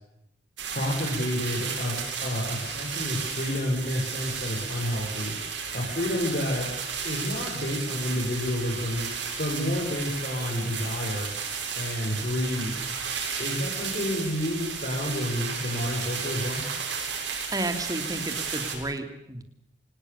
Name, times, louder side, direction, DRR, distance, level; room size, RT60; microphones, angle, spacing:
sound 1, 0.6-18.8, right 6 dB, 75° right, 7.9 m, -33 dB
voice 1, 0.7-5.4 5.7-6.7 7.0-9.1 9.4-11.3 11.7-12.8 13.4-16.6, left 1 dB, 50° left, -3 dB, 6.7 m, -29 dB
voice 2, 17.5-19.4, right 1 dB, 20° right, 7 dB, 2.9 m, -32 dB
28.0 x 19.5 x 7.1 m, 0.82 s
head